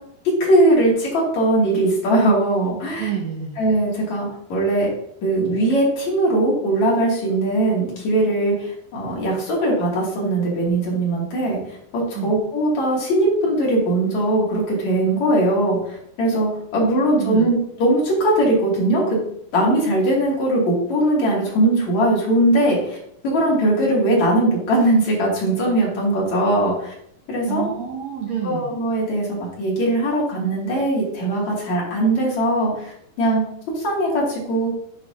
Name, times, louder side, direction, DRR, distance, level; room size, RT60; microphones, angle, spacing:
voice 1, 0.4-3.1 3.6-4.9 5.2-11.6 11.9-19.2 19.5-23.0 23.2-26.9 27.3-27.6 28.4-33.5 33.8-34.7, right 1 dB, 50° left, -4 dB, 3.8 m, -20 dB
voice 2, 3.0-3.6 12.1-12.3 16.9-17.5 27.5-28.7, right 8 dB, 90° right, 0 dB, 1.5 m, -28 dB
9.8 x 7.2 x 2.8 m, 0.69 s
omnidirectional pair, 4.4 m